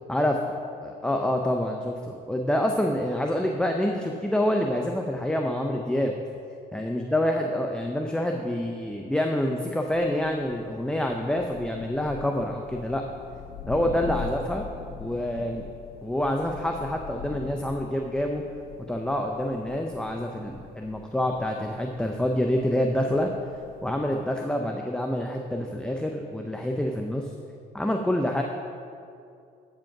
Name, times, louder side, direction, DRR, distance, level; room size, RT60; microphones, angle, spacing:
voice 1, 0.1-0.4 0.8-6.1 6.7-13.0 13.6-14.7 15.0-15.6 16.0-18.4 18.9-23.3 23.8-27.3 27.7-28.4, left 1 dB, 5° left, 2 dB, 0.5 m, -27 dB
Thunder, 9.6-24.2, left 6 dB, 65° left, 1.8 m, -43 dB
12.0 x 5.3 x 5.9 m, 2.5 s
cardioid pair, 110°, 17 cm